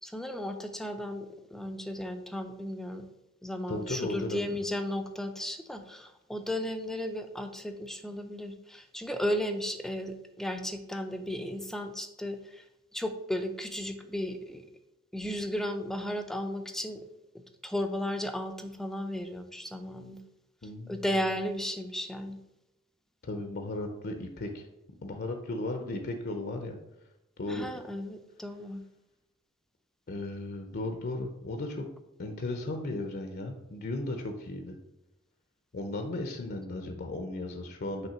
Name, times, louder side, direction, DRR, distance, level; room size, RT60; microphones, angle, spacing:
voice 1, 0.0-3.1 3.4-12.6 12.9-14.6 15.1-17.0 17.3-20.2 20.9-22.4 27.5-28.8, left 1 dB, ahead, 6 dB, 0.4 m, -35 dB
voice 2, 3.7-4.6 20.6-21.0 23.2-24.7 25.0-26.8 27.4-27.7 30.1-31.9 32.2-34.8 35.7-38.1, left 2 dB, 45° left, 6 dB, 0.6 m, -35 dB
5.8 x 3.1 x 5.5 m, 0.90 s
head